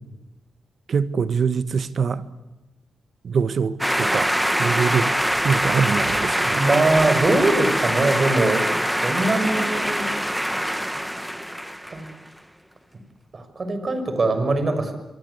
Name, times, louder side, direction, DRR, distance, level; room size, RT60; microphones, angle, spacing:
voice 1, 0.9-2.2 3.2-4.3 4.6-5.1 5.4-6.6, right 6 dB, 60° right, 13 dB, 1.6 m, -23 dB
sound 1, 3.8-12.1, equal, 5° right, 1.8 m, -23 dB
voice 2, 6.5-8.6 9.0-10.1 11.9-12.1 13.3-14.9, right 2 dB, 40° right, 9 dB, 6.0 m, -22 dB
27.0 x 23.5 x 8.3 m, 1.0 s
cardioid pair, 80°, 0 cm